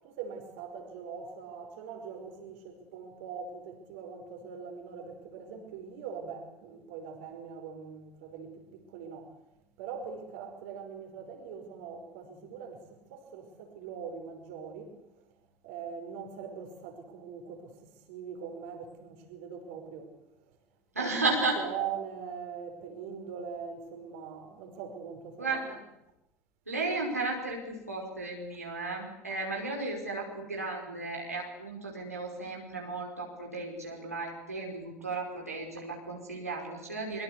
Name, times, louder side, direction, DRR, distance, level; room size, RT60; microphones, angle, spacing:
voice 1, 0.0-9.4 9.8-15.3 15.6-20.1 20.5-20.6 21.0-25.8, right 6 dB, 65° right, 5.2 m, -42 dB
voice 2, 20.9-21.6 25.4-25.8 26.7-37.2, right 3 dB, 90° right, 5.1 m, -34 dB
25.0 x 23.5 x 8.4 m
figure-of-eight pair, 65°, 8 cm